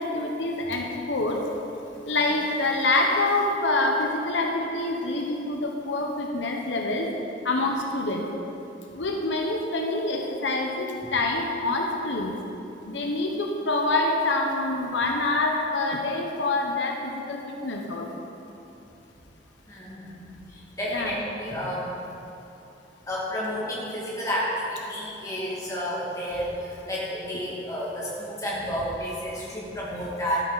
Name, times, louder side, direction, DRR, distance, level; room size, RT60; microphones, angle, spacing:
voice 1, 0.0-1.4 2.1-7.1 7.4-8.3 8.9-12.3 12.8-18.1 20.9-21.3, left 2 dB, 85° left, 1 dB, 1.0 m, -26 dB
voice 2, 19.7-20.3 20.7-21.9 23.1-26.5 26.9-30.4, equal, 20° left, -7 dB, 2.4 m, -31 dB
12.5 x 8.7 x 4.1 m, 2.9 s
head